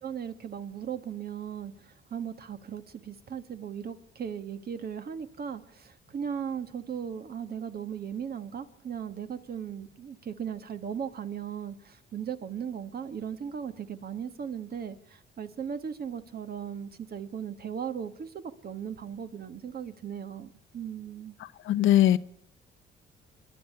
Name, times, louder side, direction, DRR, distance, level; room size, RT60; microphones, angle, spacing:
voice 1, 0.0-21.4, right 8 dB, 50° right, 1.6 m, -37 dB
voice 2, 21.4-22.2, left 12 dB, 80° left, 0.8 m, -22 dB
25.5 x 11.0 x 9.7 m
cardioid pair, 90°, 20 cm